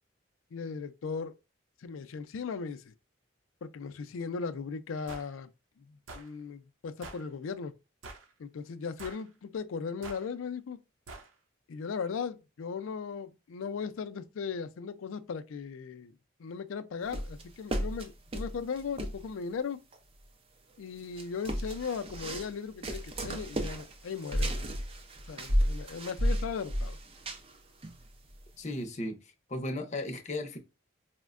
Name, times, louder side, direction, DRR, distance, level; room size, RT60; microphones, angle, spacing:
voice 1, 0.5-1.3 1.8-2.9 3.6-5.5 5.9-7.7 8.4-10.8 11.7-16.1 16.4-19.8 20.8-24.7 25.3-27.0, left 5 dB, 85° left, 0.4 m, -37 dB
sound 1, 5.1-5.3 6.1-6.3 7.0-7.3 8.0-8.3 9.0-9.3 10.0-10.3 11.1-11.3, right 2 dB, 85° right, 0.7 m, -45 dB
sound 2, 17.1-19.3 19.9-20.0 21.0-22.5 22.8-27.6 27.8-28.3, equal, 30° right, 0.4 m, -33 dB
voice 2, 28.6-30.6, left 1 dB, 35° left, 0.6 m, -36 dB
4.3 x 2.1 x 2.3 m
head